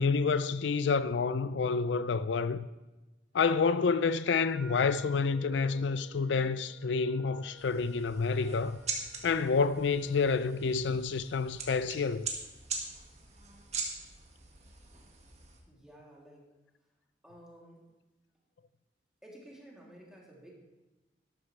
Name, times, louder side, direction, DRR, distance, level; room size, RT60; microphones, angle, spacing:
voice 1, 0.0-2.7 3.3-8.8 9.2-12.3, left 5 dB, 90° left, 0.4 m, -28 dB
Wind instrument woodwind instrument, 4.2-10.9, left 3 dB, 70° right, 2.2 m, -52 dB
sound 1, 7.6-15.6, right 4 dB, 40° right, 1.8 m, -42 dB
voice 2, 15.6-16.4 17.2-17.8 19.2-20.6, right 1 dB, 5° right, 2.9 m, -53 dB
12.5 x 12.0 x 3.3 m
head